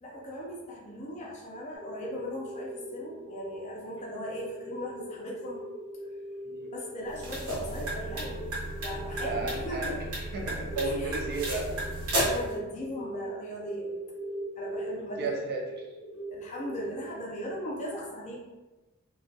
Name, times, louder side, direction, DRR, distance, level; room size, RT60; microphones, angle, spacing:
voice 1, 0.0-5.6 6.7-8.4 8.8-10.0 10.8-11.2 12.2-13.9 14.6-15.3 16.3-18.4, equal, 30° left, -3 dB, 0.4 m, -38 dB
sound 1, 1.7-17.8, right 1 dB, 80° left, 0.6 m, -41 dB
sound 2, 7.1-12.5, right 1 dB, 70° right, 0.8 m, -33 dB
voice 2, 9.2-11.7 15.2-15.8, right 3 dB, 45° right, -1 dB, 0.5 m, -34 dB
2.2 x 2.2 x 2.6 m, 1.1 s
head